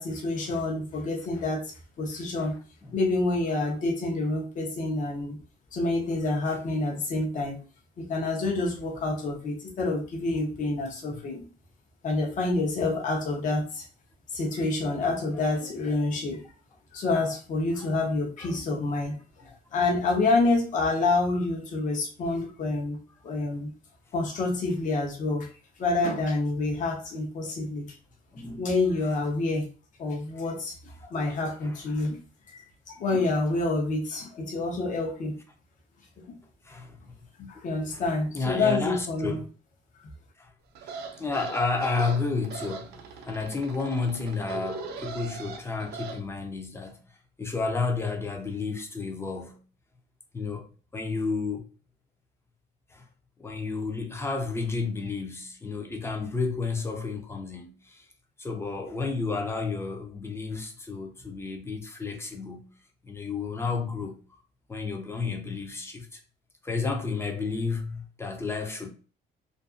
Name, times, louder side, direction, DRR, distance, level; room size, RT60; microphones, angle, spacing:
voice 1, 0.0-2.5 2.9-5.4 5.7-7.6 8.0-11.4 12.0-13.9 14.3-16.4 16.9-19.2 19.7-23.0 23.2-23.7 24.1-25.5 25.8-27.9 28.6-29.7 30.0-32.2 32.5-35.3 37.5-39.4, left 2 dB, 50° left, 0.8 m, -28 dB
voice 2, 15.3-15.7 17.7-18.1 18.4-18.6 19.4-19.6 28.3-28.8 31.6-31.8 36.6-37.0 37.8-38.0 38.3-39.5 40.4-40.5 40.8-47.0 47.4-49.6 50.3-51.7 52.9-53.0 53.4-58.1 58.4-62.7 63.0-64.2 64.7-66.2 66.6-68.9, left 4 dB, 15° left, 0.5 m, -32 dB
sound 1, 40.7-46.2, right 5 dB, 75° right, 0.5 m, -39 dB
2.5 x 2.4 x 2.4 m
cardioid pair, 110°, 17 cm